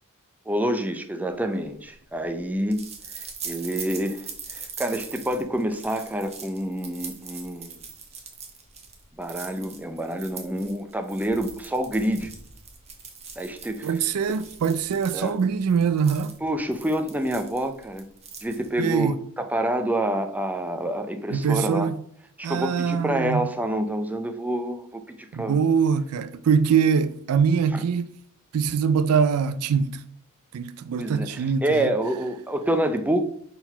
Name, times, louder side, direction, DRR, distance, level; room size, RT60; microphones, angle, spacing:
voice 1, 0.5-2.8 3.4-7.8 9.1-12.3 13.4-14.0 15.1-15.4 16.4-18.0 18.4-21.9 22.4-25.1 25.4-25.6 27.7-27.8 31.0-33.2, right 1 dB, 5° right, 0.4 m, -27 dB
sound 1, 1.5-18.9, right 5 dB, 30° right, 1.0 m, -42 dB
voice 2, 13.8-16.3 18.8-19.1 21.3-22.0 22.4-23.4 25.3-28.1 28.5-30.0 30.5-31.9, right 6 dB, 80° right, 0.4 m, -23 dB
4.5 x 3.9 x 5.5 m
head